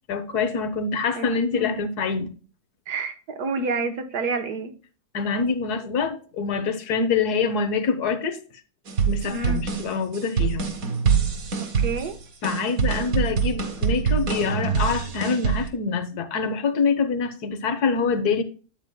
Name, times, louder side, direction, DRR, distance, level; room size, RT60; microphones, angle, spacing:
voice 1, 0.1-2.3 5.1-8.4 9.1-10.7 12.4-18.4, left 5 dB, 85° left, 1.6 m, -25 dB
voice 2, 2.9-4.7 9.3-9.6 11.6-12.2, right 3 dB, 85° right, 1.7 m, -29 dB
sound 1, 8.9-15.7, right 6 dB, 65° right, 1.8 m, -25 dB
8.9 x 8.9 x 2.2 m
omnidirectional pair, 1.6 m